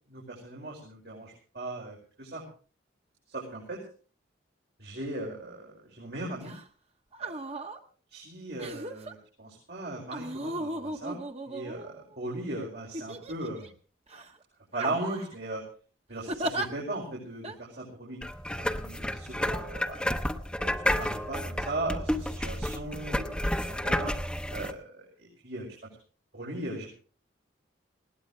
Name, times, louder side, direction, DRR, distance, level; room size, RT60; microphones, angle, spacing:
voice 1, 0.1-2.4 3.3-3.8 4.8-6.5 7.2-7.7 8.1-11.2 11.4-13.7 14.7-15.6 16.1-18.2 18.6-20.0 20.6-24.1 24.5-25.7 26.3-26.9, right 2 dB, 60° right, -3 dB, 5.5 m, -38 dB
sound 1, 6.4-6.6 7.1-7.8 8.6-9.1 10.1-12.2 12.9-13.7 14.1-14.3 14.7-15.3 16.3-16.7 17.4-17.6, right 1 dB, 30° right, 1.3 m, -36 dB
sound 2, 18.2-24.7, left 1 dB, 5° left, 0.8 m, -31 dB
20.5 x 17.5 x 3.4 m, 0.39 s
head